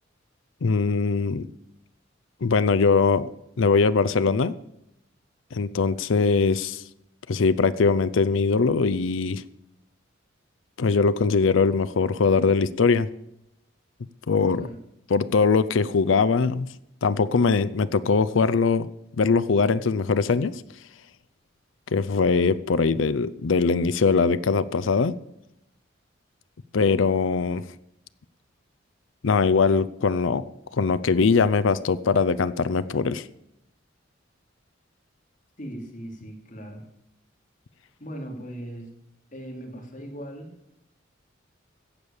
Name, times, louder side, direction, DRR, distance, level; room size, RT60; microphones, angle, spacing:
voice 1, 0.6-1.5 2.4-3.3 3.6-4.5 5.5-6.8 7.3-9.4 10.8-13.1 14.3-14.7 15.1-16.7 17.0-18.9 19.2-20.6 21.9-25.1 26.7-27.6 29.2-30.4 30.7-33.2, left 4 dB, 80° left, 15 dB, 0.5 m, -21 dB
voice 2, 35.6-36.9 38.0-38.9 39.3-40.5, equal, 40° left, 2 dB, 3.0 m, -39 dB
15.0 x 8.1 x 7.1 m, 0.83 s
head